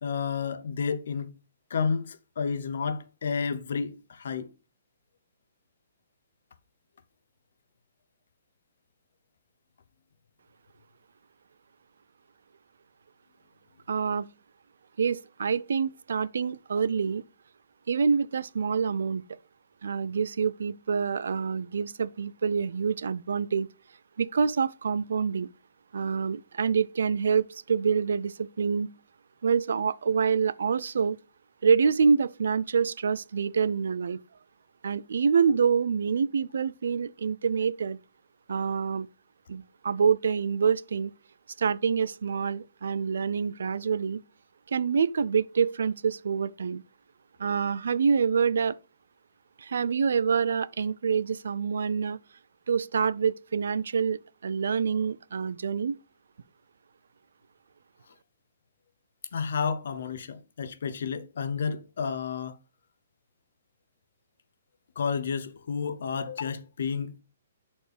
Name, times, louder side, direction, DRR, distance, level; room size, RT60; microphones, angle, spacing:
voice 1, 0.0-1.4 1.7-4.5 59.3-62.6 65.0-67.2, left 6 dB, 55° left, 0.8 m, -31 dB
voice 2, 13.9-14.3 15.0-17.2 17.9-19.2 19.8-23.7 24.2-25.5 25.9-28.9 29.4-31.2 31.6-34.2 34.8-38.0 38.5-39.1 39.5-41.1 41.6-44.2 44.7-46.8 47.4-48.8 49.6-52.2 52.7-55.9, right 6 dB, 70° right, 0.4 m, -26 dB
11.0 x 4.3 x 3.4 m
hypercardioid pair, 180°, 0 cm